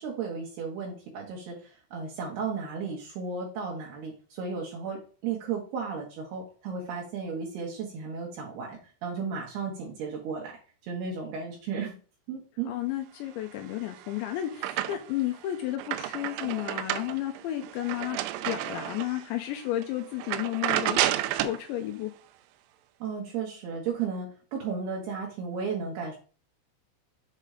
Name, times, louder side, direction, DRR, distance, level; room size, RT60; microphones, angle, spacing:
voice 1, 0.0-10.6 10.8-12.0 12.3-12.7 23.0-26.2, right 5 dB, 70° right, -1 dB, 2.9 m, -34 dB
voice 2, 12.7-18.2 18.5-21.0 21.4-22.1, left 13 dB, 80° left, 4 dB, 2.9 m, -32 dB
sound 1, 13.7-15.3 15.6-19.2 19.7-19.8 20.2-21.6, right 13 dB, 85° right, 2.9 m, -31 dB
7.6 x 4.0 x 4.9 m, 0.38 s
omnidirectional pair, 5.4 m